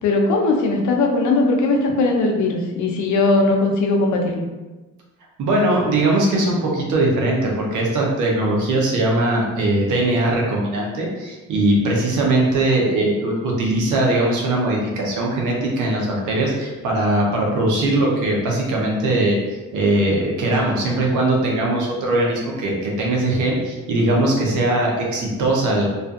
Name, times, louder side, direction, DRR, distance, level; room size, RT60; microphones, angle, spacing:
voice 1, 0.0-4.5, left 2 dB, 75° left, 1 dB, 0.6 m, -19 dB
voice 2, 5.4-19.4 19.7-25.8, right 2 dB, 80° right, -2 dB, 0.8 m, -20 dB
2.5 x 2.4 x 2.4 m, 1.2 s
cardioid pair, 90°, 30 cm